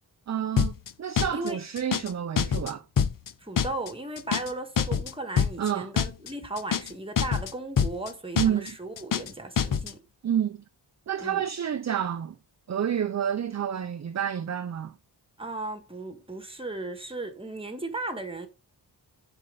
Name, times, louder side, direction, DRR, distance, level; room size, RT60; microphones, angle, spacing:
voice 1, 0.3-0.7 1.0-2.8 5.6-5.9 8.3-8.8 10.2-10.6 11.1-12.4 12.7-14.9, right 9 dB, 40° right, 0.5 m, -29 dB
sound 1, 0.6-0.9 1.2-1.5 1.8-2.1 2.4-2.7 3.0-3.3 3.6-3.9 4.2-4.5 4.8-5.1 5.4-5.7 6.0-6.3 6.6-6.9 7.2-7.5 7.8-8.1 8.4-8.7 9.0-9.3 9.6-9.9, left 7 dB, 50° left, 0.6 m, -25 dB
voice 2, 3.4-10.0 11.2-11.4 15.4-18.5, right 2 dB, 15° right, 1.5 m, -36 dB
7.5 x 4.5 x 3.8 m
wide cardioid pair, 100°, 41 cm